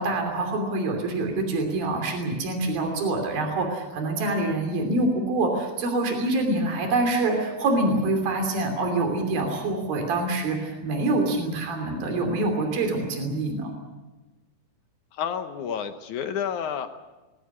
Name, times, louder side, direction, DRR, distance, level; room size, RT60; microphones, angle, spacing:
voice 1, 0.0-13.7, right 2 dB, 80° right, 4 dB, 4.9 m, -25 dB
voice 2, 15.1-16.9, left 8 dB, 65° left, 8 dB, 2.2 m, -30 dB
20.5 x 17.5 x 9.7 m, 1.1 s
omnidirectional pair, 4.1 m